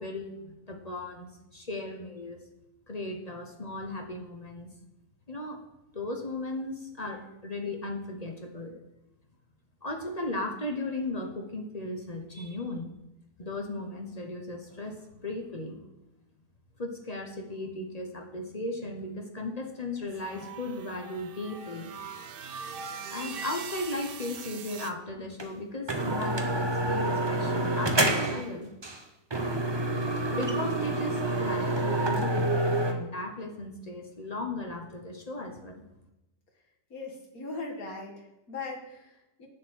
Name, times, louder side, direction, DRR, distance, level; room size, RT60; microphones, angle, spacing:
voice 1, 0.0-2.4 2.9-4.7 5.3-5.6 5.9-8.7 9.8-12.9 13.4-15.8 16.8-21.9 23.1-28.7 30.3-35.9, left 2 dB, 30° left, 3 dB, 1.0 m, -36 dB
sound 1, 20.2-24.9, right 6 dB, 80° right, 0.5 m, -41 dB
sound 2, 25.4-25.5 25.9-28.5 28.8-29.0 29.3-32.9, right 2 dB, 25° right, 0.6 m, -27 dB
voice 2, 36.9-39.5, left 3 dB, 55° left, -1 dB, 2.3 m, -39 dB
8.3 x 7.4 x 6.3 m, 0.92 s
omnidirectional pair, 1.8 m